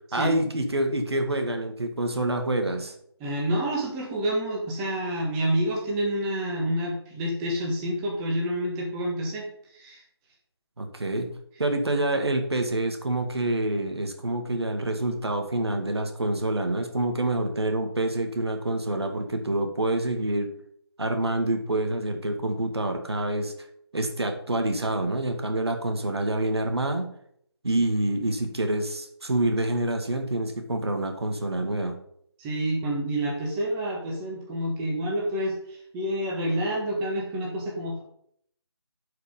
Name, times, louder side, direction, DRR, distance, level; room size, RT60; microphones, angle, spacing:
voice 1, 0.1-2.9 10.8-20.5 21.0-23.5 23.9-27.1 27.6-32.0, right 1 dB, 70° right, 5 dB, 2.0 m, -27 dB
voice 2, 3.2-9.4 9.7-10.0 32.4-38.0, right 1 dB, 10° right, -2 dB, 1.5 m, -28 dB
11.5 x 5.2 x 5.2 m, 0.68 s
figure-of-eight pair, 155°, 14 cm